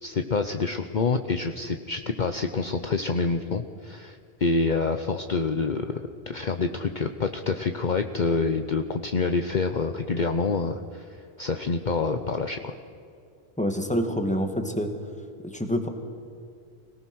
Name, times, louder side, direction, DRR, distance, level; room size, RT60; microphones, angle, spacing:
voice 1, 0.0-12.7, left 4 dB, 50° left, 7 dB, 0.9 m, -27 dB
voice 2, 13.6-14.9 15.4-15.9, equal, 5° left, 5 dB, 2.0 m, -26 dB
25.0 x 18.0 x 6.3 m, 2.5 s
omnidirectional pair, 1.1 m